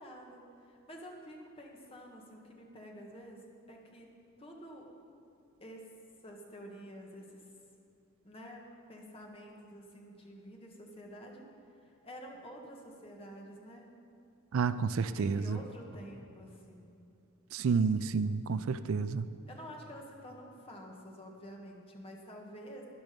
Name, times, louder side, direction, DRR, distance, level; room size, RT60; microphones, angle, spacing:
voice 1, 0.0-3.4 3.7-4.1 4.4-4.9 5.6-5.8 6.2-7.5 8.2-8.6 8.9-13.9 15.0-17.0 19.5-22.9, equal, 25° left, 0 dB, 1.5 m, -49 dB
voice 2, 14.5-15.6 17.5-19.3, right 5 dB, 70° right, 14 dB, 0.4 m, -30 dB
12.5 x 10.5 x 5.2 m, 2.7 s
head